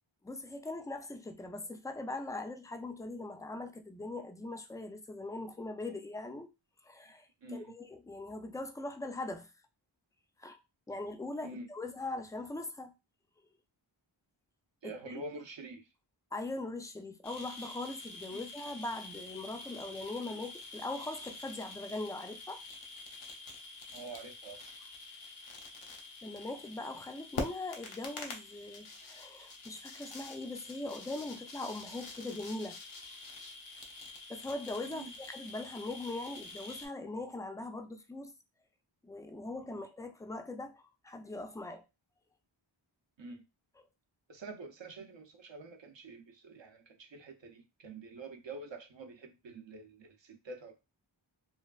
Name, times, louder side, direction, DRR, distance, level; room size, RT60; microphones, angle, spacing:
voice 1, 0.2-6.5 6.8-9.5 10.4-10.6 10.9-12.9 14.8-15.1 16.3-22.6 26.2-32.8 34.3-38.3 39.0-41.8, left 2 dB, 10° left, 0.3 m, -41 dB
voice 2, 7.4-7.7 11.4-11.7 14.8-15.9 18.3-18.4 23.9-24.6 34.9-35.1 39.6-39.8 43.2-43.4 44.3-50.7, right 2 dB, 65° right, 0.7 m, -47 dB
sound 1, 17.2-36.9, left 3 dB, 90° left, 0.7 m, -46 dB
3.2 x 2.4 x 2.3 m
wide cardioid pair, 45°, 48 cm